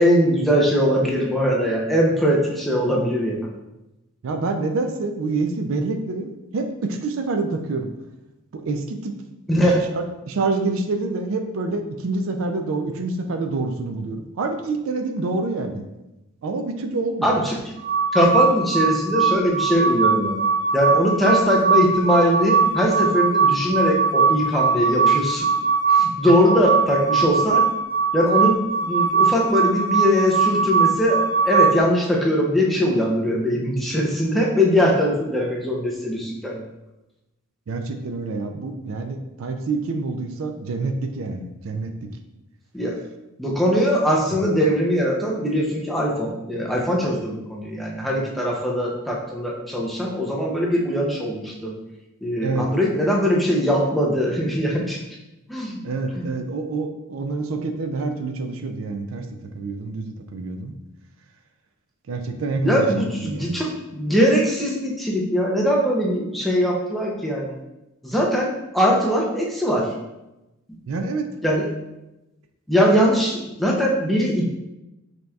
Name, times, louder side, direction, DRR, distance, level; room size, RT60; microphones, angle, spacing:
voice 1, 0.0-3.4 9.5-9.9 17.2-17.6 18.1-20.4 20.7-25.5 25.9-27.6 28.1-36.6 42.7-43.0 43.4-51.7 52.2-55.0 55.5-55.8 56.1-56.2 62.6-67.5 68.0-68.5 68.7-69.9 71.4-71.7 72.7-74.5, equal, ahead, -3 dB, 0.5 m, -21 dB
voice 2, 4.2-7.9 8.5-9.1 9.7-15.8 16.4-17.3 37.7-42.1 44.3-44.4 52.4-52.7 55.8-59.3 59.5-60.7 62.1-62.8 63.1-63.6 70.9-71.3, right 3 dB, 65° right, 6 dB, 0.4 m, -27 dB
sound 1, 17.8-31.8, right 5 dB, 45° right, 0.8 m, -21 dB
5.1 x 2.9 x 2.3 m, 0.95 s
head